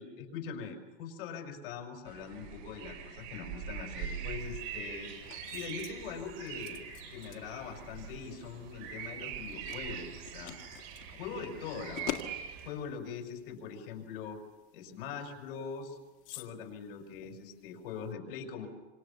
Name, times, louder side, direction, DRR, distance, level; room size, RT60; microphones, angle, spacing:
voice 1, 0.0-5.1 5.5-6.8 7.1-10.6 11.1-12.2 12.6-14.4 14.7-16.0 16.3-18.7, left 6 dB, 60° left, 5 dB, 5.4 m, -42 dB
sound 1, 2.1-12.7, right 8 dB, 55° right, 6.8 m, -43 dB
sound 2, 4.4-18.1, left 13 dB, 40° left, 1.9 m, -49 dB
28.5 x 26.5 x 7.1 m, 1.2 s
supercardioid pair, 160°, 31 cm